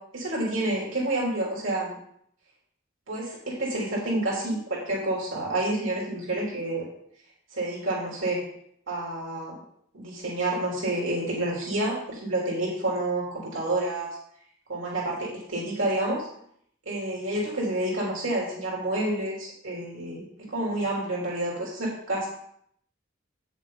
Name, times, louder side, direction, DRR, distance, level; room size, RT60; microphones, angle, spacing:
voice 1, 0.1-1.9 3.1-6.8 7.5-8.4 8.9-9.6 9.9-14.1 14.7-16.3 16.8-20.2 20.5-22.3, right 1 dB, 80° right, -4 dB, 3.3 m, -29 dB
8.9 x 7.3 x 4.0 m, 0.68 s
head